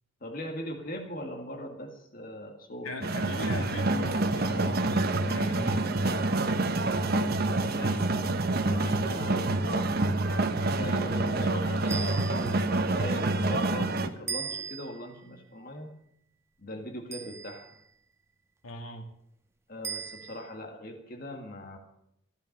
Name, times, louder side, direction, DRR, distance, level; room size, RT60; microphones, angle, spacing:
voice 1, 0.2-2.9 7.0-10.4 10.8-15.9 16.6-17.7 19.7-21.8, equal, 45° left, 3 dB, 1.9 m, -40 dB
voice 2, 2.8-5.9 18.6-19.0, left 2 dB, 80° left, 5 dB, 2.1 m, -38 dB
sound 1, 3.0-14.1, right 2 dB, 45° right, 1.0 m, -27 dB
sound 2, 11.9-12.8 14.3-15.1 17.1-17.8 19.8-20.5, right 6 dB, 15° right, 0.6 m, -38 dB
14.5 x 11.5 x 6.6 m, 0.75 s
head